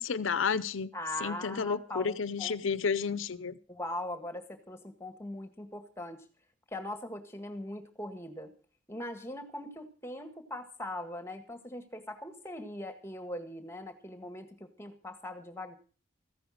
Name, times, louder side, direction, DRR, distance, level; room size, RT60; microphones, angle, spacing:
voice 1, 0.0-0.9 1.2-3.6, left 5 dB, 85° left, 17 dB, 0.6 m, -31 dB
voice 2, 0.9-2.6 3.7-6.2 6.7-8.5 8.9-15.8, left 1 dB, 15° left, 9 dB, 1.7 m, -41 dB
14.5 x 10.5 x 6.3 m, 0.38 s
head